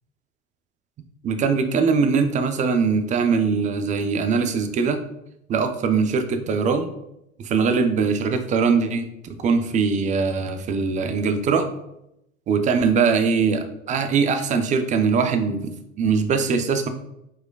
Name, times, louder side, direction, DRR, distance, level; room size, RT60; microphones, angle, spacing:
voice 1, 1.2-5.0 5.5-6.9 7.4-9.1 9.4-11.7 12.5-16.9, right 5 dB, 20° right, 8 dB, 0.3 m, -21 dB
4.7 x 4.3 x 2.2 m, 0.82 s
hypercardioid pair, 90°, 39 cm